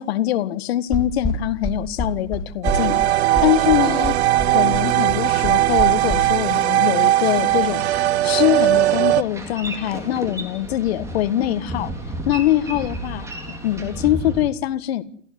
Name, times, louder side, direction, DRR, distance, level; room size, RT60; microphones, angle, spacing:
voice 1, 0.0-4.2 4.5-11.9 12.3-13.3 13.6-15.0, left 13 dB, 55° left, 1.7 m, -23 dB
sound 1, 0.9-6.2, left 1 dB, 10° left, 2.6 m, -26 dB
sound 2, 2.6-9.2, right 14 dB, 60° right, 0.9 m, -19 dB
Boat Water vehicle, 7.4-14.4, right 1 dB, 10° right, 3.8 m, -33 dB
30.0 x 10.0 x 9.9 m
supercardioid pair, 160°, 36 cm